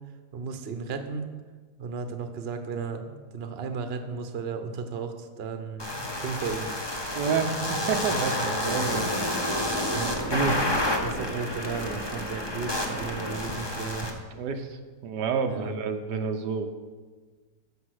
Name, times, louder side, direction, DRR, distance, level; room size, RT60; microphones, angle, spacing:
voice 1, 0.3-1.2 1.8-6.7 11.0-14.1 15.5-15.7, right 5 dB, 45° right, 7 dB, 1.0 m, -34 dB
sound 1, 5.8-14.1, left 1 dB, 20° left, 1.0 m, -29 dB
voice 2, 7.1-9.1 9.9-10.6 14.3-16.7, right 5 dB, 90° right, 6 dB, 1.5 m, -29 dB
14.0 x 5.2 x 6.4 m, 1.4 s
omnidirectional pair, 1.7 m